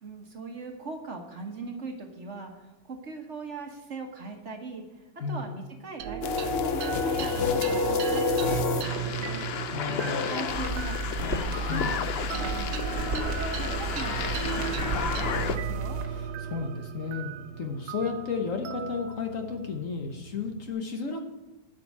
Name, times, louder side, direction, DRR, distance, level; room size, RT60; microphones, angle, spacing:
voice 1, 0.0-9.4 10.3-10.9 11.2-12.7 13.1-16.0, right 3 dB, 45° right, 3 dB, 1.4 m, -40 dB
sound 1, 6.0-20.7, right 9 dB, 80° right, 1.3 m, -36 dB
sound 2, 6.2-15.6, left 6 dB, 70° left, 0.5 m, -30 dB
voice 2, 9.7-10.3 11.7-11.9 16.0-21.2, left 5 dB, 50° left, 4 dB, 1.3 m, -33 dB
sound 3, 10.5-16.1, right 1 dB, 65° right, 1.8 m, -34 dB
11.5 x 5.3 x 8.3 m, 1.1 s
omnidirectional pair, 1.9 m